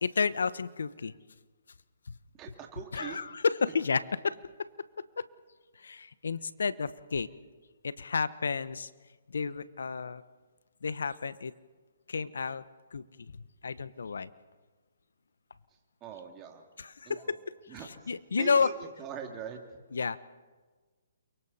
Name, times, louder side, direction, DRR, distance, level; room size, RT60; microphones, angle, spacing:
voice 1, 0.0-1.1 2.1-2.2 2.9-4.4 5.2-5.3 5.8-7.3 7.8-8.9 9.3-10.2 10.8-11.5 12.1-12.6 12.9-14.3 16.8-17.4 18.1-18.7 19.9-20.2, left 5 dB, 80° left, 16 dB, 0.9 m, -31 dB
voice 2, 2.4-3.2 16.0-16.6 17.0-17.4 17.7-19.6, right 8 dB, 20° right, 2 dB, 2.6 m, -43 dB
29.5 x 23.5 x 4.2 m, 1.3 s
hypercardioid pair, 145°, 0 cm